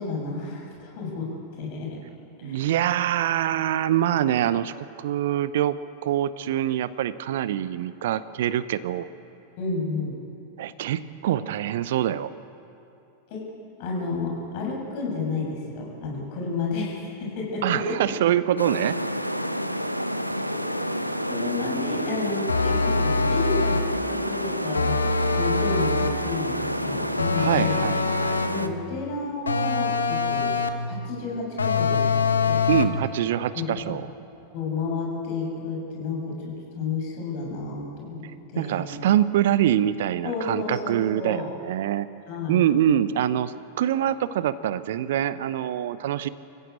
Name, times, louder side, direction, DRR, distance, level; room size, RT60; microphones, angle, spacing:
voice 1, 0.0-2.0 2.4-2.7 9.6-10.3 13.3-18.0 20.5-20.7 21.3-25.1 25.4-27.8 28.5-32.7 33.5-33.9 34.5-39.0 40.2-41.5 42.3-42.6, left 3 dB, 45° left, -1 dB, 7.3 m, -31 dB
voice 2, 2.4-5.8 6.0-9.1 10.6-12.3 17.6-19.0 27.4-28.4 32.7-34.0 38.2-42.1 42.5-46.3, right 11 dB, 55° right, 16 dB, 0.8 m, -25 dB
sound 1, 18.6-28.7, equal, 90° right, 1.0 m, -29 dB
sound 2, 22.5-24.0 24.7-26.3 27.2-28.6 29.5-30.9 31.6-33.0, left 4 dB, 75° left, 1.2 m, -24 dB
27.0 x 15.5 x 8.6 m, 2.7 s
figure-of-eight pair, 90°, 0 cm